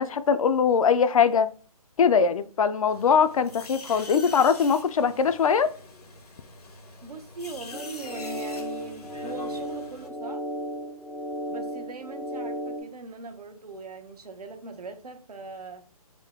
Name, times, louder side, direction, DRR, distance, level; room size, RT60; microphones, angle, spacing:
voice 1, 0.0-1.5 2.0-5.7, left 6 dB, 65° left, 0.5 m, -21 dB
voice 2, 2.2-2.5 7.0-10.4 11.5-15.8, right 3 dB, 85° right, 0.9 m, -41 dB
sound 1, 2.9-10.1, left 3 dB, 85° left, 1.1 m, -45 dB
sound 2, 7.7-12.8, equal, 5° left, 0.3 m, -34 dB
3.7 x 2.1 x 3.5 m
hypercardioid pair, 155°, 19 cm